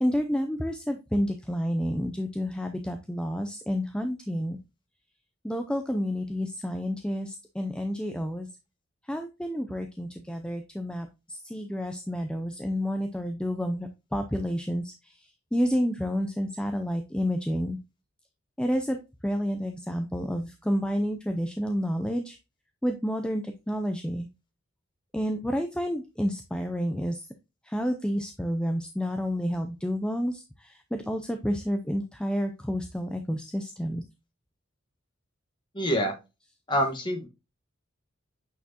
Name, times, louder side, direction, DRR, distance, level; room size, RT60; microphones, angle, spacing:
voice 1, 0.0-4.6 5.4-8.5 9.1-17.8 18.6-19.0 19.2-22.4 22.8-24.3 25.1-27.3 27.6-34.0, equal, 5° left, 6 dB, 0.4 m, -30 dB
voice 2, 35.7-36.1 36.7-37.3, equal, 20° left, 3 dB, 1.4 m, -26 dB
8.3 x 4.4 x 2.8 m, 0.27 s
head